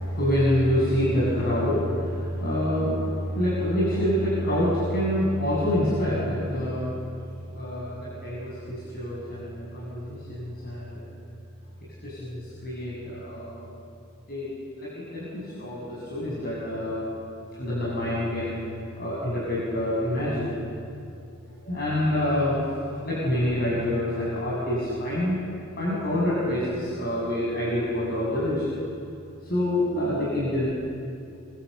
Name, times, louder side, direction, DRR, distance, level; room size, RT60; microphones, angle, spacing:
voice 1, 0.0-11.1 12.0-13.7 14.3-14.5 14.8-17.0 17.6-18.6 19.0-20.5 21.6-22.6 23.0-25.4 25.8-28.8 29.4-30.7, left 1 dB, 45° left, -6 dB, 7.8 m, -27 dB
28.0 x 26.0 x 8.2 m, 2.5 s
head